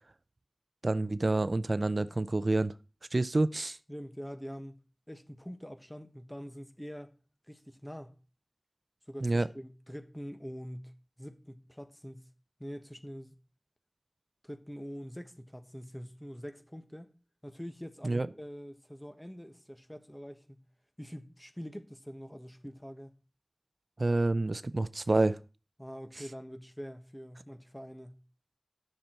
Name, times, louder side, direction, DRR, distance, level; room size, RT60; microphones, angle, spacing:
voice 1, 0.8-2.7 3.1-3.8 9.2-9.5 18.0-18.3 24.0-25.4, right 2 dB, 65° right, 0.4 m, -28 dB
voice 2, 3.9-4.8 5.1-7.1 7.5-8.2 9.1-12.3 12.6-13.3 14.4-17.1 17.4-20.6 21.0-23.1 25.8-28.2, equal, 10° left, 1.2 m, -45 dB
10.5 x 6.7 x 4.4 m
wide cardioid pair, 55°, 0 cm